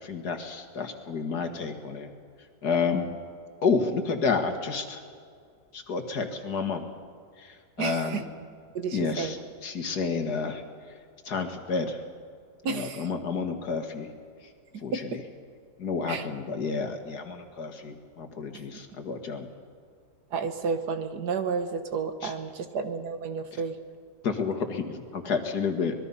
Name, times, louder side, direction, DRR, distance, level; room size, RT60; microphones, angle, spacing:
voice 1, 0.0-2.1 2.6-3.1 3.6-5.0 5.7-6.8 7.4-8.2 8.9-9.4 9.6-10.6 11.3-12.0 12.7-14.1 14.8-14.9 15.8-19.5 22.2-22.3 24.2-25.9, left 5 dB, 70° left, 5 dB, 2.2 m, -30 dB
voice 2, 7.8-8.2 8.7-9.4 12.6-13.1 14.7-15.2 16.1-16.3 18.7-18.9 20.3-23.8, right 5 dB, 70° right, 8 dB, 1.8 m, -31 dB
25.0 x 21.0 x 5.6 m, 2.2 s
omnidirectional pair, 1.8 m